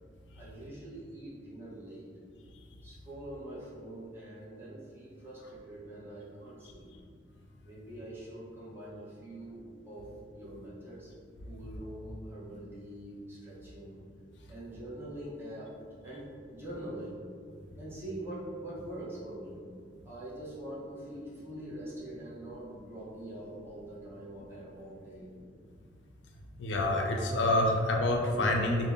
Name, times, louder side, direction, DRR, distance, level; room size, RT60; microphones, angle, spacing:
voice 1, 0.3-2.1 2.8-6.9 7.6-10.1 10.3-11.1 11.4-14.0 14.5-15.8 16.0-17.2 17.8-19.6 20.0-25.3, right 1 dB, 15° right, -8 dB, 0.8 m, -44 dB
voice 2, 26.6-28.9, left 1 dB, 70° left, 1 dB, 0.4 m, -27 dB
3.5 x 2.1 x 3.5 m, 2.2 s
head